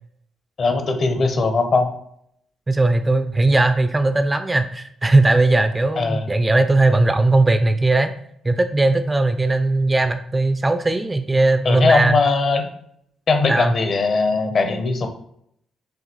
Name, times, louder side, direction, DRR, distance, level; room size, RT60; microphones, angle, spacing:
voice 1, 0.6-1.9 6.0-6.2 11.6-12.7 13.3-15.1, left 3 dB, 50° left, 6 dB, 0.7 m, -19 dB
voice 2, 2.7-8.1 8.4-12.2 13.5-13.8, right 2 dB, 20° right, 9 dB, 0.3 m, -18 dB
6.3 x 2.3 x 3.0 m, 0.71 s
cardioid pair, 90°, 0 cm